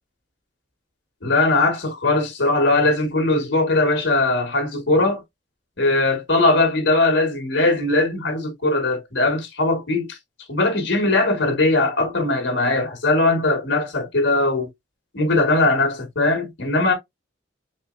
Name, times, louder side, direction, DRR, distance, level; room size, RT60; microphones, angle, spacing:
voice 1, 1.2-5.2 5.8-10.2 10.5-14.7 15.1-16.9, left 2 dB, 70° left, 1.8 m, -20 dB
4.8 x 3.0 x 2.6 m
head